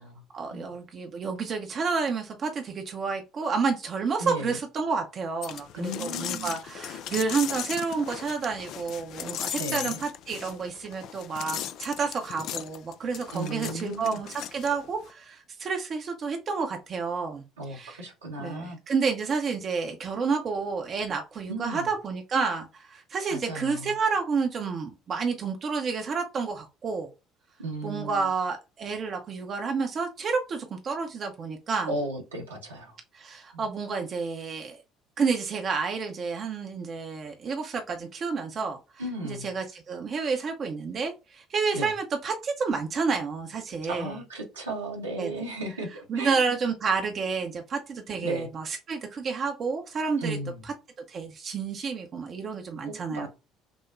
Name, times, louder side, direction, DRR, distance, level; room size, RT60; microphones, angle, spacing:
voice 1, 0.3-17.4 17.7-18.0 18.4-27.1 27.8-31.9 33.1-34.8 35.2-38.8 39.2-44.1 45.2-45.4 46.1-50.4 50.6-50.7 51.1-53.3, right 5 dB, 40° right, 0.6 m, -30 dB
voice 2, 4.2-4.6 5.8-6.5 9.5-10.0 13.3-14.2 17.6-18.8 21.5-21.9 23.3-23.9 27.6-28.3 31.9-33.0 33.5-33.7 39.0-39.5 41.7-41.9 43.9-45.9 46.1-46.5 48.2-48.5 50.2-50.6 52.8-53.3, right 1 dB, 80° right, 1.1 m, -35 dB
sound 1, 5.4-15.1, left 10 dB, 55° left, 0.3 m, -37 dB
6.1 x 2.1 x 2.5 m
figure-of-eight pair, 55°, 0 cm